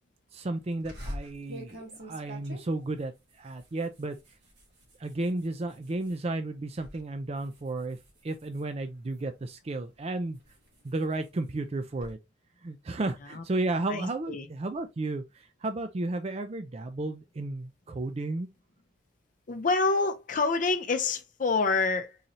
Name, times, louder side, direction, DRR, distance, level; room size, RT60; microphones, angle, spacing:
voice 1, 0.3-3.1 3.4-4.1 5.0-8.0 8.2-10.4 10.8-12.2 12.6-18.5, right 2 dB, 35° right, 0.4 m, -33 dB
sound 1, 0.8-6.2 6.6-7.0 7.4-9.4 9.9-12.1, equal, 70° right, 1.8 m, -46 dB
voice 2, 13.9-14.5 19.5-22.2, left 3 dB, 45° left, 0.6 m, -27 dB
4.0 x 2.7 x 3.0 m
head